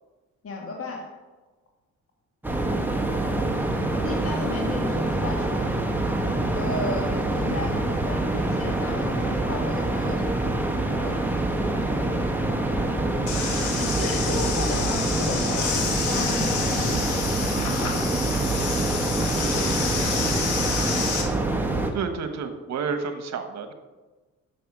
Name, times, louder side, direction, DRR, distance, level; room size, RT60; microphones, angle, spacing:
voice 1, 0.4-1.1 4.0-5.8 6.5-10.4 11.0-11.3 13.7-18.4 19.5-19.7, left 3 dB, 45° left, 0 dB, 1.7 m, -34 dB
sound 1, 2.4-21.9, right 2 dB, 5° right, 1.5 m, -25 dB
sound 2, 13.3-21.2, left 5 dB, 80° left, 1.9 m, -29 dB
voice 2, 21.9-23.7, right 5 dB, 65° right, 8 dB, 1.2 m, -30 dB
9.2 x 6.9 x 6.0 m, 1.2 s
cardioid pair, 90°, 30 cm